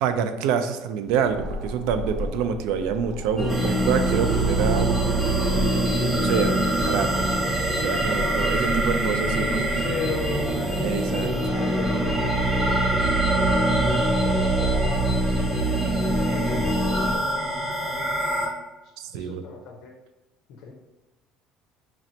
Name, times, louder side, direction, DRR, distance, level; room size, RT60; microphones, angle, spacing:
voice 1, 0.0-5.0 6.1-7.3 7.7-9.8 10.8-11.3 19.1-19.4, right 7 dB, 75° right, 9 dB, 0.3 m, -26 dB
sound 1, 1.1-6.5, left 1 dB, 50° right, 0.8 m, -35 dB
sound 2, 3.4-17.2, right 1 dB, 5° left, 0.5 m, -25 dB
sound 3, 3.5-18.5, right 2 dB, 15° right, 0.8 m, -27 dB
voice 2, 5.5-5.8 6.4-6.7 8.2-10.8 11.5-12.9 13.8-18.5 18.8-19.9 20.5-20.7, left 5 dB, 60° left, 1 dB, 0.5 m, -38 dB
4.1 x 3.0 x 2.7 m, 1.1 s
cardioid pair, 175°, 0 cm